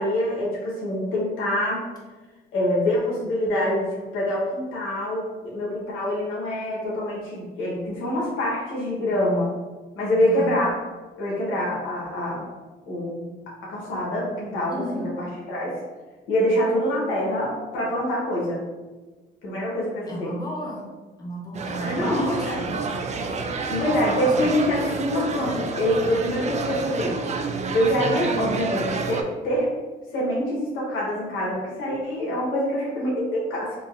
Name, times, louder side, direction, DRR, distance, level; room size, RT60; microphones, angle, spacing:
voice 1, 0.0-1.9 2.5-9.5 9.9-10.8 11.2-12.4 12.8-13.2 13.7-15.7 16.3-18.6 19.4-20.3 21.8-22.6 23.7-27.2 27.7-29.7 30.1-33.7, equal, 90° left, -5 dB, 1.3 m, -25 dB
voice 2, 10.2-10.5 14.7-15.1 20.1-20.9 21.2-22.8 23.9-24.6 28.3-28.6, equal, 20° left, -5 dB, 1.1 m, -34 dB
sound 1, 21.5-29.2, right 4 dB, 35° right, 0.4 m, -29 dB
3.8 x 2.9 x 2.6 m, 1.3 s
cardioid pair, 90°, 20 cm